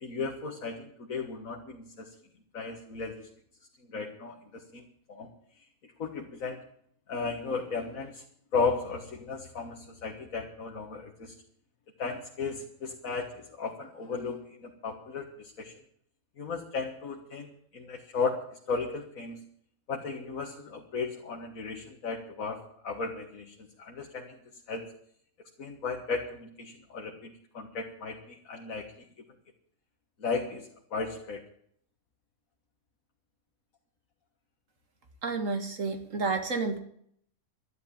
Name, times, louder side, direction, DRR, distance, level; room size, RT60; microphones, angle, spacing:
voice 1, 0.0-2.1 2.5-3.3 3.9-4.8 5.1-5.3 6.0-6.6 7.1-8.2 8.5-11.3 12.0-15.7 16.4-19.4 19.9-24.4 24.7-24.9 25.6-29.1 30.2-31.4, left 4 dB, 70° left, 2 dB, 2.0 m, -35 dB
voice 2, 35.2-36.8, right 4 dB, 65° right, 6 dB, 2.2 m, -30 dB
12.0 x 10.5 x 8.7 m, 0.65 s
omnidirectional pair, 1.5 m